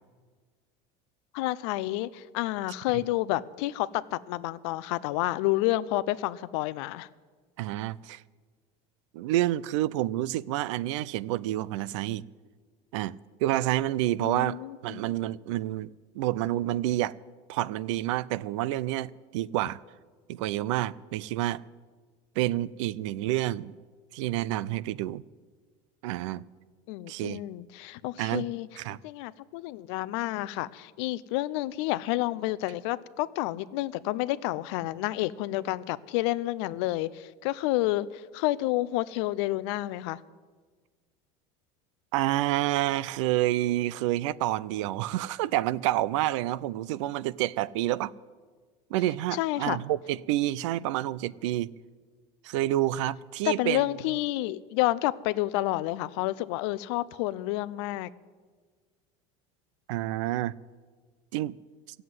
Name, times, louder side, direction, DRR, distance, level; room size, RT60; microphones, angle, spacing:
voice 1, 1.3-7.1 14.2-15.0 26.9-40.2 49.3-49.8 53.4-58.1, left 17 dB, 70° left, 0.5 m, -30 dB
voice 2, 7.6-8.2 9.1-12.2 12.9-17.2 17.5-19.8 20.3-21.6 22.4-23.8 24.1-25.2 26.0-26.4 27.1-27.4 28.2-28.5 28.8-29.0 42.1-48.1 48.9-51.7 52.4-53.8 59.9-60.6 61.3-61.5, right 15 dB, 90° right, 0.5 m, -28 dB
15.0 x 7.8 x 9.4 m
cardioid pair, 160°, 15 cm